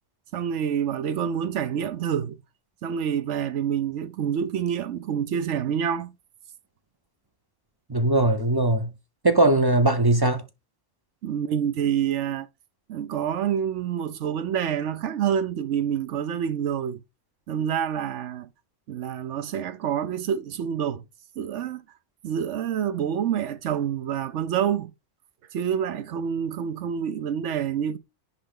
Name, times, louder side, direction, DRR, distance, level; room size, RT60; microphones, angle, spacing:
voice 1, 0.3-2.4 2.8-6.1 11.2-12.5 12.9-17.0 17.5-18.5 18.9-21.0 21.4-21.8 22.2-24.9 25.5-28.0, right 8 dB, 70° right, 1.0 m, -27 dB
voice 2, 7.9-8.9 9.2-10.4, right 2 dB, 30° right, 0.5 m, -20 dB
10.0 x 3.4 x 3.7 m
omnidirectional pair, 1.3 m